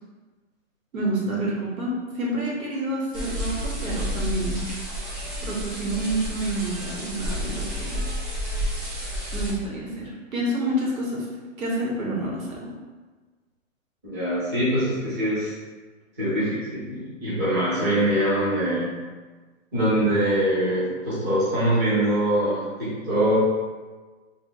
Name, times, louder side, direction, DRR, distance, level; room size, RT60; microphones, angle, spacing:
voice 1, 0.9-4.6 5.4-8.0 9.3-11.3 11.6-12.7, right 1 dB, 85° right, -4 dB, 1.4 m, -28 dB
sound 1, 3.1-9.5, equal, 40° right, 1.4 m, -30 dB
voice 2, 14.0-15.5 16.2-18.9 19.7-23.4, right 1 dB, 15° right, -11 dB, 0.6 m, -23 dB
3.6 x 2.1 x 3.8 m, 1.3 s
hypercardioid pair, 165°, 41 cm